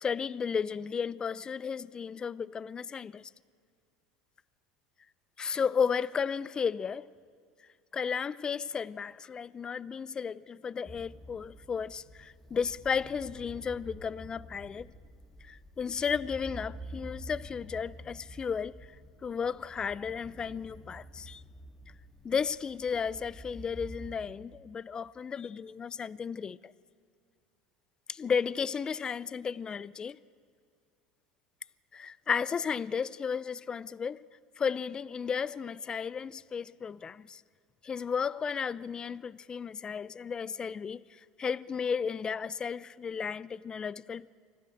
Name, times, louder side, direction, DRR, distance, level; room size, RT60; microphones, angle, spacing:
voice 1, 0.0-3.3 5.4-7.1 7.9-14.9 15.4-18.8 19.2-21.4 22.2-26.7 28.1-30.2 31.9-34.2 34.6-37.4 37.8-44.3, left 6 dB, 30° left, 0.5 m, -34 dB
sound 1, 10.9-24.1, right 1 dB, 10° left, 1.8 m, -48 dB
25.0 x 15.0 x 7.7 m
hypercardioid pair, 80°, 3 cm